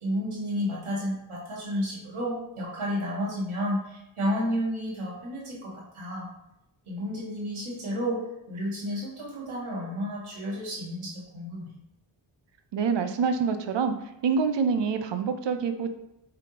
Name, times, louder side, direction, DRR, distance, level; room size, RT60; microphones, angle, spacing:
voice 1, 0.0-6.3 6.9-8.2 8.5-11.7, equal, 85° right, -4 dB, 1.5 m, -31 dB
voice 2, 12.7-13.9 14.2-15.9, right 5 dB, 65° right, 8 dB, 0.6 m, -26 dB
4.9 x 3.5 x 2.9 m, 0.88 s
wide cardioid pair, 70°, 48 cm